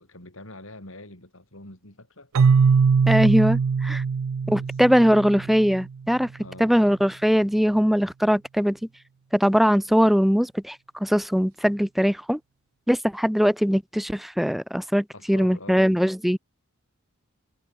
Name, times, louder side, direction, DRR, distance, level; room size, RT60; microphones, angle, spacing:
voice 1, 0.0-2.3 4.5-4.7 5.0-5.2 6.4-6.8 15.1-16.0, left 2 dB, 60° left, 7.4 m, -44 dB
Keyboard (musical), 2.3-6.1, right 5 dB, 75° right, 0.4 m, -21 dB
voice 2, 3.1-4.0 4.5-6.3 6.6-8.8 9.3-12.4 12.9-16.4, equal, ahead, 0.7 m, -21 dB
head